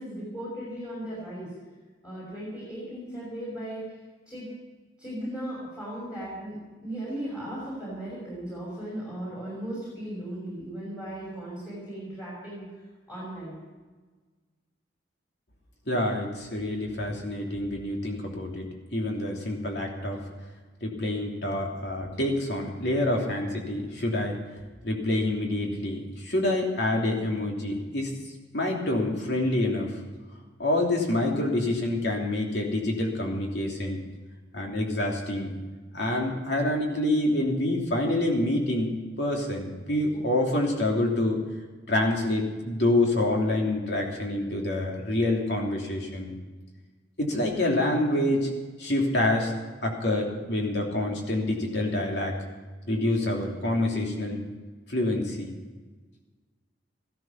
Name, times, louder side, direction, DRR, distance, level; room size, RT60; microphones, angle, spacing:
voice 1, 0.0-1.5 2.0-3.8 4.3-4.5 5.0-6.6 6.8-12.7 13.1-13.6, right 1 dB, 20° left, -8 dB, 5.4 m, -37 dB
voice 2, 15.9-20.2 20.8-24.4 24.8-28.1 28.5-30.0 30.6-34.0 34.5-35.5 35.9-41.4 41.9-46.3 47.2-48.5 48.8-49.5 49.8-52.3 52.9-54.4 54.9-55.5, left 1 dB, 60° left, 0 dB, 3.0 m, -27 dB
15.0 x 13.5 x 5.9 m, 1.3 s
head